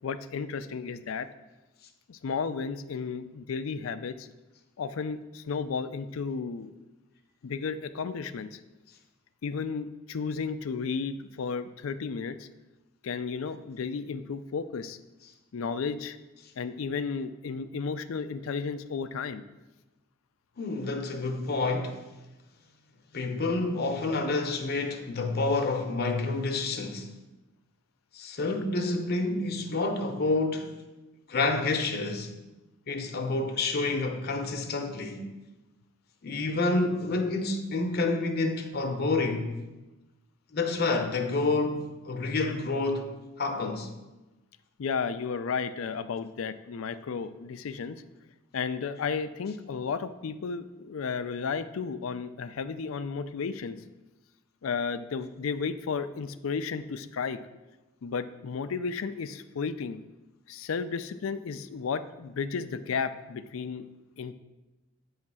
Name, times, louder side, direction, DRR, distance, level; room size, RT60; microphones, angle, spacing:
voice 1, 0.0-1.3 2.1-4.3 4.8-6.7 7.4-8.6 9.4-12.5 13.0-15.0 15.5-16.2 16.6-19.4 44.8-48.0 48.5-53.8 54.6-57.4 58.0-60.0 60.5-63.9 64.2-64.3, left 5 dB, 85° left, 0.4 m, -33 dB
voice 2, 20.6-22.0 23.1-27.1 28.1-30.8 31.3-32.3 32.9-35.2 36.2-39.5 40.5-43.1 43.4-43.9, left 3 dB, 50° left, 0.8 m, -28 dB
8.6 x 3.2 x 6.0 m
head